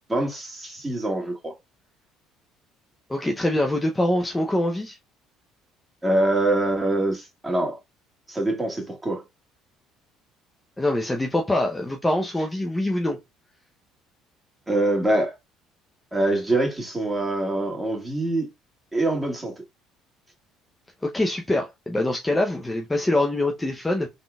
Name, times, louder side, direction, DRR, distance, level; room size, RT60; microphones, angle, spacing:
voice 1, 0.1-1.5 6.0-7.8 8.3-9.2 14.7-15.3 16.1-18.5 18.9-19.6, right 2 dB, 15° right, 1.7 m, -24 dB
voice 2, 3.1-5.0 10.8-13.2 21.0-24.1, left 1 dB, 15° left, 0.7 m, -24 dB
3.8 x 3.7 x 2.4 m
hypercardioid pair, 70°, 0 cm